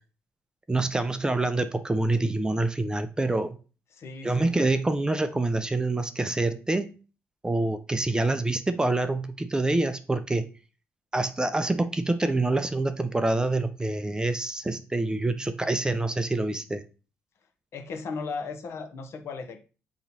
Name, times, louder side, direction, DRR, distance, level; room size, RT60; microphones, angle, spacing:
voice 1, 0.7-3.6 4.2-6.9 7.4-10.5 11.1-16.8, right 2 dB, 15° right, 0.5 m, -26 dB
voice 2, 3.9-4.6 17.7-19.6, left 4 dB, 60° left, 0.9 m, -36 dB
3.9 x 3.0 x 4.1 m
supercardioid pair, 70°, 5 cm